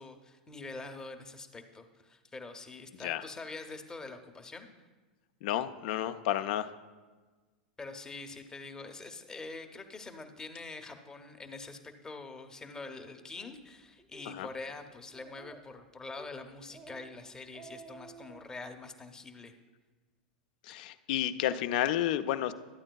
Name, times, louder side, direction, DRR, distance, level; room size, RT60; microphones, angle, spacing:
voice 1, 0.0-4.7 7.8-19.5, left 3 dB, 15° left, 5 dB, 0.7 m, -45 dB
voice 2, 5.4-6.7 14.3-14.5 20.6-22.5, left 12 dB, 60° left, 11 dB, 0.4 m, -31 dB
Speech, 13.4-13.5 14.0-14.3 14.7-14.8 15.1-15.7 16.2-16.3 16.7-17.1 17.4-18.4, right 4 dB, 20° right, 0.7 m, -52 dB
13.0 x 8.7 x 2.3 m, 1.3 s
hypercardioid pair, 105°, 5 cm